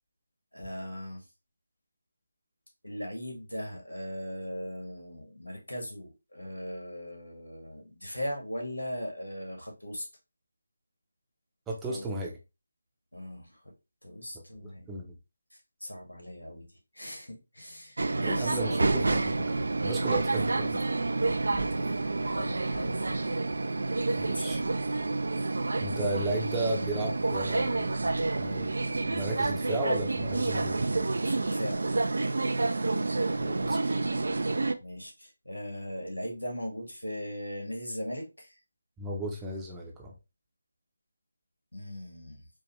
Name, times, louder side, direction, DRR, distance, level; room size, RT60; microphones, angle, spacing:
voice 1, 0.5-1.3 2.8-10.1 11.9-12.2 13.1-13.6 14.0-14.9 15.8-16.6 16.9-18.8 21.7-23.3 24.1-24.7 31.2-32.0 34.8-38.6 41.7-42.4, equal, 85° left, 1.9 m, -39 dB
voice 2, 11.7-12.4 14.9-15.1 18.2-19.3 19.8-20.8 24.2-24.6 25.8-30.9 33.4-34.1 39.0-40.1, right 1 dB, 10° right, 0.7 m, -34 dB
sound 1, 18.0-34.7, right 3 dB, 60° right, 0.4 m, -29 dB
4.6 x 2.5 x 3.1 m
figure-of-eight pair, 155°, 0 cm